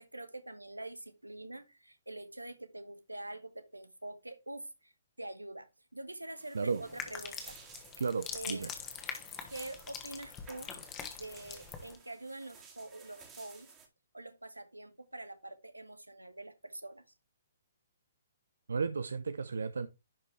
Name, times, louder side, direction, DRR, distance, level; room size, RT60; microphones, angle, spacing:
voice 1, 0.0-4.9 5.2-7.6 8.3-8.7 9.5-10.7 11.1-13.7 14.1-17.0, right 2 dB, 90° right, 1.2 m, -45 dB
sound 1, 6.4-13.9, right 5 dB, 20° right, 2.2 m, -57 dB
sound 2, 6.8-12.0, left 7 dB, 20° left, 1.7 m, -44 dB
voice 2, 8.0-8.7 18.7-19.9, right 4 dB, 70° right, 0.6 m, -33 dB
11.0 x 5.2 x 3.3 m
figure-of-eight pair, 125°, 0 cm